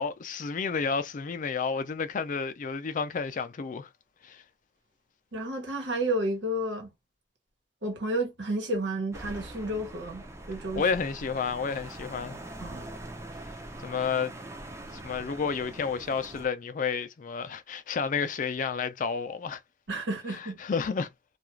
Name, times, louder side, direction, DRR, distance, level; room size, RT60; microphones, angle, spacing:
voice 1, 0.0-3.9 4.2-4.4 10.8-12.4 13.8-14.3 14.9-19.6 20.3-21.1, left 5 dB, 45° left, 0.4 m, -31 dB
voice 2, 5.3-6.9 7.8-10.2 10.5-10.8 12.6-12.9 19.9-20.6, right 1 dB, 90° right, 1.1 m, -31 dB
sound 1, 9.1-16.5, right 1 dB, 15° right, 0.5 m, -43 dB
2.4 x 2.3 x 3.0 m
head